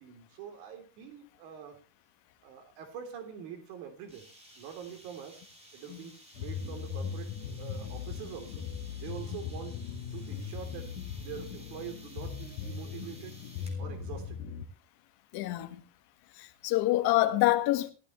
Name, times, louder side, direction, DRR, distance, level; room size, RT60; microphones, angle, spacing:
voice 1, 0.0-1.8 2.4-4.2 4.6-5.4 5.7-7.3 7.6-8.7 9.0-9.8 10.1-10.9 11.2-13.3 13.8-14.4, right 8 dB, 60° right, 3.4 m, -44 dB
sound 1, 4.1-13.8, right 1 dB, 10° right, 3.6 m, -55 dB
sound 2, 6.3-14.6, left 6 dB, 70° left, 1.8 m, -39 dB
voice 2, 15.3-15.8 16.3-17.9, left 17 dB, 50° left, 1.8 m, -27 dB
16.5 x 13.5 x 3.1 m
cardioid pair, 170°, 49 cm